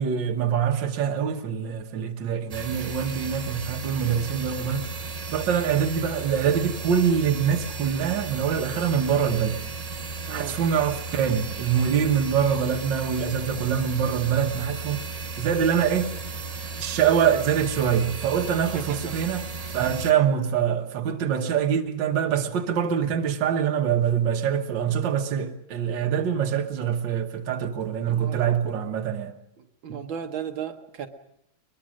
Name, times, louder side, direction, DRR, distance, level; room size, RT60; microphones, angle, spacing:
voice 1, 0.0-4.9 5.3-9.6 10.3-15.0 15.4-16.1 16.8-19.4 19.7-29.3 29.9-30.0, right 8 dB, 70° right, 1.9 m, -24 dB
sound 1, 2.5-20.1, right 4 dB, 40° right, 0.5 m, -35 dB
voice 2, 10.3-10.6 18.8-19.1 28.1-28.4 29.8-31.1, right 8 dB, 85° right, 2.0 m, -35 dB
22.5 x 21.5 x 6.3 m
omnidirectional pair, 2.1 m